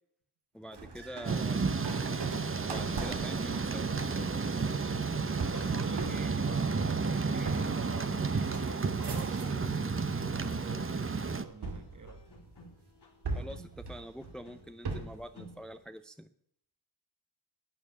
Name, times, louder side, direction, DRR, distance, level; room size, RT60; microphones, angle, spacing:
voice 1, 0.5-1.7 2.6-3.9 13.3-16.3, equal, ahead, 0.7 m, -45 dB
sound 1, 0.7-9.9 10.3-10.9 11.6-12.7 13.2-15.3, right 4 dB, 80° right, 2.4 m, -41 dB
Thunder / Rain, 1.2-11.4, right 4 dB, 30° right, 1.0 m, -32 dB
sound 2, 3.7-15.8, left 1 dB, 85° left, 3.9 m, -54 dB
voice 2, 5.1-12.3, right 4 dB, 50° right, 1.8 m, -48 dB
11.5 x 10.0 x 7.1 m
wide cardioid pair, 110°, 40 cm